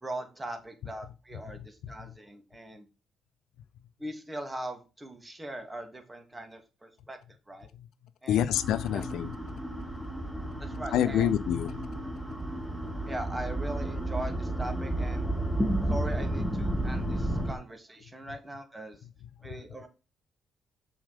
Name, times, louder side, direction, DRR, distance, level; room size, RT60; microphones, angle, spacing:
voice 1, 0.0-2.9 4.0-7.2 7.5-7.7 8.2-8.5 8.9-9.0 10.6-11.3 13.1-15.3 15.9-19.0 19.4-19.9, right 1 dB, 15° right, 2.5 m, -40 dB
voice 2, 8.3-9.8 10.5-12.1 19.4-19.6, left 10 dB, 80° left, 0.7 m, -29 dB
sound 1, 8.5-17.5, right 1 dB, ahead, 1.9 m, -32 dB
7.3 x 5.2 x 5.0 m
cardioid pair, 90°, 0 cm